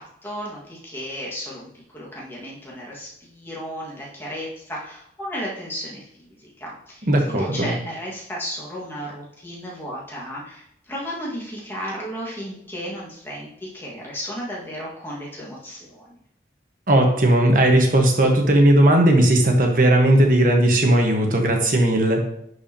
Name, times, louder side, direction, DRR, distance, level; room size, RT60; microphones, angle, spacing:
voice 1, 0.0-16.2, equal, 10° left, -5 dB, 1.8 m, -34 dB
voice 2, 7.1-7.7 16.9-22.2, right 1 dB, 45° right, 2 dB, 1.3 m, -17 dB
10.5 x 4.8 x 2.9 m, 0.73 s
head